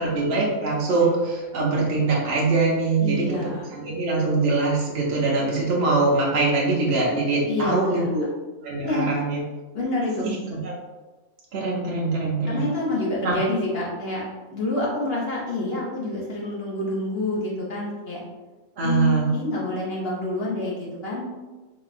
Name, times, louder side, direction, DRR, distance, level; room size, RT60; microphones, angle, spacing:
voice 1, 0.0-3.3 3.7-8.2 8.6-9.4 11.5-12.6 13.2-13.4 18.8-19.3, right 3 dB, 55° right, -4 dB, 0.8 m, -23 dB
voice 2, 3.0-3.6 7.5-8.1 8.8-9.1 9.7-10.3 12.5-18.2 18.8-21.2, left 2 dB, 55° left, -5 dB, 0.8 m, -28 dB
3.9 x 2.7 x 2.4 m, 1.2 s
omnidirectional pair, 1.5 m